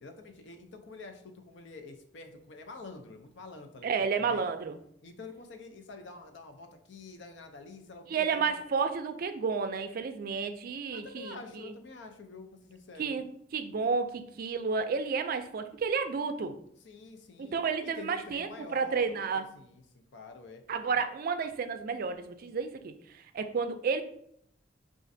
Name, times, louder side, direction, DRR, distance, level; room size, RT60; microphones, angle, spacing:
voice 1, 0.0-4.5 5.0-8.4 10.9-13.2 16.8-20.6 20.9-21.0, left 3 dB, 75° left, 6 dB, 0.5 m, -48 dB
voice 2, 3.8-4.8 8.1-11.7 13.0-13.3 13.5-16.6 17.4-19.5 20.7-24.0, right 5 dB, 50° right, 8 dB, 0.3 m, -31 dB
4.9 x 2.5 x 2.6 m, 0.68 s
head